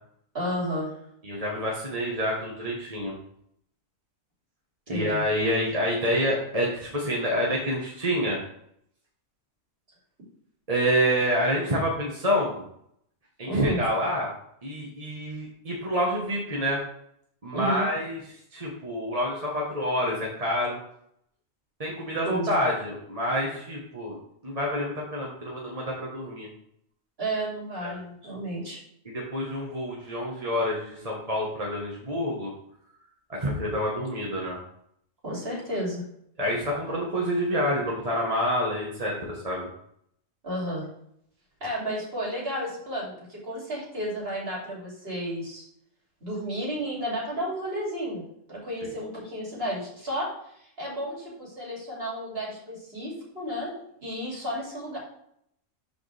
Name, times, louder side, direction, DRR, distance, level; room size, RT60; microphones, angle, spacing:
voice 1, 0.3-0.9 4.9-5.2 13.4-13.8 17.5-17.8 22.2-22.6 27.2-28.8 35.2-36.0 40.4-40.9 41.6-45.6 46.2-50.3 50.6-55.0, equal, 45° right, -4 dB, 3.1 m, -32 dB
voice 2, 1.2-3.2 4.9-8.4 10.7-12.6 13.4-14.3 14.6-16.8 17.4-18.2 18.5-20.8 21.8-26.5 27.8-27.9 29.0-32.5 33.3-34.6 36.4-39.7, equal, 30° right, -3 dB, 1.4 m, -27 dB
12.5 x 5.0 x 3.4 m, 0.71 s
omnidirectional pair, 1.4 m